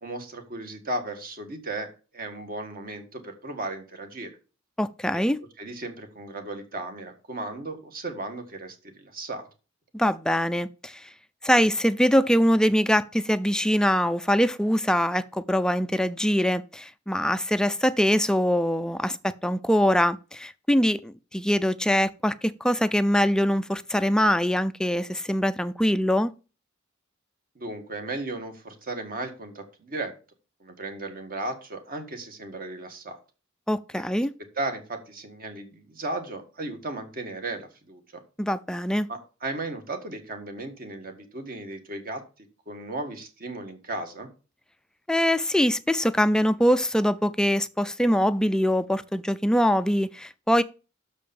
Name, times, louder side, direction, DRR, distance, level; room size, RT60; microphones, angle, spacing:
voice 1, 0.0-1.9 2.1-4.3 5.6-9.5 27.6-30.1 30.6-33.2 34.6-38.2 39.1-42.2 42.7-44.3, right 2 dB, 45° right, 1.6 m, -35 dB
voice 2, 4.8-5.4 9.9-11.1 11.4-26.3 33.7-34.3 38.4-39.1 45.1-50.6, equal, 5° left, 0.3 m, -23 dB
6.7 x 5.1 x 6.9 m
head